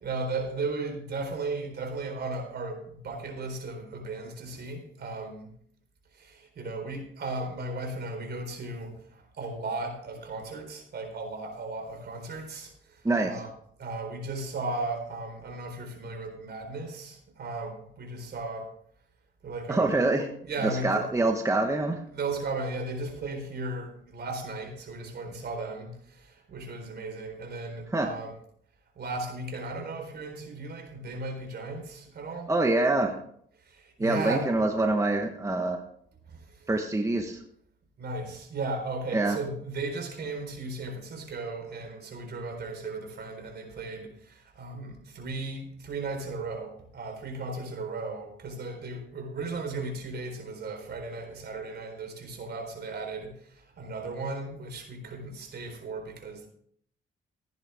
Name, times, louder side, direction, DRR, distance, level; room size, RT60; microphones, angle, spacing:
voice 1, 0.0-5.5 6.1-13.5 13.8-18.7 19.4-20.0 20.4-21.1 22.1-28.3 29.0-32.5 33.6-34.5 36.3-36.7 38.0-56.5, right 3 dB, 55° right, 3 dB, 4.2 m, -36 dB
voice 2, 13.0-13.4 19.7-20.3 20.6-22.0 27.9-28.1 32.5-33.2 34.0-35.8 36.7-37.4 39.1-39.4, right 2 dB, 15° right, 3 dB, 1.2 m, -25 dB
15.5 x 10.0 x 3.6 m, 0.66 s
cardioid pair, 90°, 20 cm